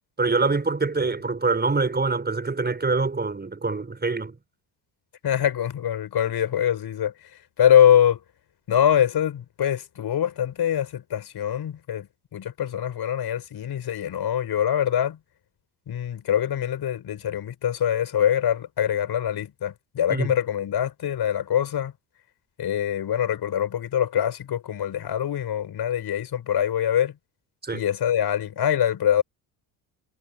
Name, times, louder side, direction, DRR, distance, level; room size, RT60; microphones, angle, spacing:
voice 1, 0.2-4.4 20.1-20.3 27.6-27.8, right 3 dB, 20° right, 5.3 m, -25 dB
voice 2, 5.2-7.1 7.6-8.2 8.7-15.2 15.9-21.9 22.6-27.2 27.7-29.2, left 10 dB, 50° left, 5.3 m, -24 dB
supercardioid pair, 80°, 48 cm